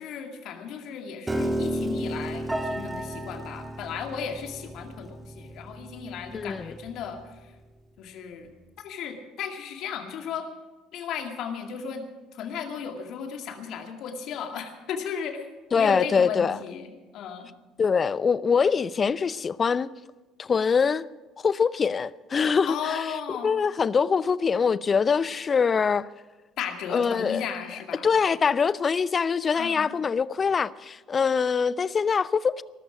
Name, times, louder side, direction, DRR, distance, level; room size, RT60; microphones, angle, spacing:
voice 1, 0.0-7.5 8.0-8.5 8.8-10.5 10.9-15.5 15.7-17.5 22.6-23.5 26.6-28.2 29.6-29.9, left 7 dB, 60° left, 2.2 m, -35 dB
Piano, 1.3-7.5, right 1 dB, 15° right, 2.2 m, -33 dB
voice 2, 6.3-6.7 15.7-16.6 17.8-19.9 20.4-21.1 21.4-23.0 23.4-26.1 26.9-27.4 28.0-32.6, left 6 dB, 35° left, 0.5 m, -23 dB
19.5 x 13.0 x 5.1 m
hypercardioid pair, 60°, 0 cm